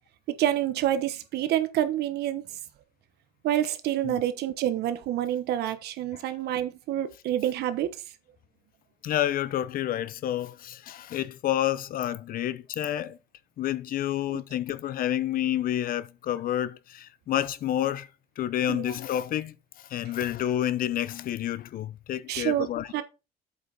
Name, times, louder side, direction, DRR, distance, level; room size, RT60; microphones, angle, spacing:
voice 1, 0.3-2.4 3.4-8.0 18.7-18.9 22.3-22.7 22.9-23.0, right 12 dB, 75° right, 1.2 m, -27 dB
voice 2, 9.0-13.2 13.6-18.1 18.4-19.5 19.9-22.9, left 12 dB, 55° left, 0.7 m, -29 dB
8.0 x 5.4 x 4.1 m
cardioid pair, 110°, 17 cm